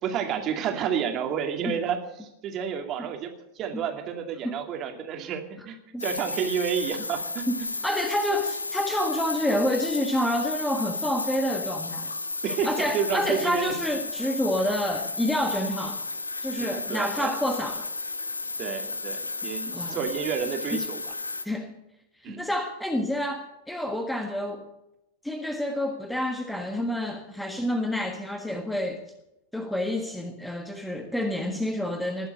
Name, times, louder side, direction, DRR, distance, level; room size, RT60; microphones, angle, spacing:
voice 1, 0.0-7.4 12.4-13.7 16.5-17.3 18.6-21.1 22.2-22.4, right 8 dB, 35° right, 4 dB, 2.4 m, -30 dB
sound 1, 6.0-21.4, left 3 dB, 80° left, 1.0 m, -33 dB
voice 2, 7.5-12.1 12.6-16.0 16.4-17.9 19.7-20.0 20.7-20.9 21.4-21.7 22.2-24.7 25.2-29.0 29.5-32.3, left 1 dB, 5° left, 5 dB, 1.5 m, -28 dB
20.0 x 7.9 x 7.9 m, 0.89 s
figure-of-eight pair, 90°, 0 cm